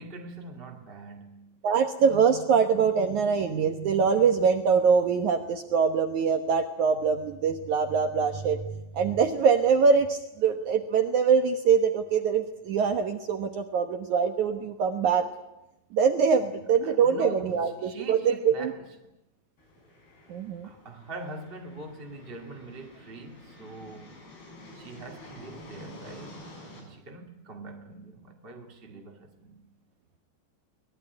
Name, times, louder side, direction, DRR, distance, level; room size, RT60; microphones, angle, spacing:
voice 1, 0.0-1.5 16.4-19.0 20.6-24.2 24.7-29.6, right 2 dB, 20° right, 1.7 m, -43 dB
voice 2, 1.6-8.6 8.9-15.3 15.9-18.7 20.3-20.7, right 6 dB, 70° right, 1.8 m, -23 dB
sound 1, 19.6-26.8, left 1 dB, 60° left, 8.4 m, -49 dB
23.5 x 20.5 x 9.8 m
omnidirectional pair, 5.1 m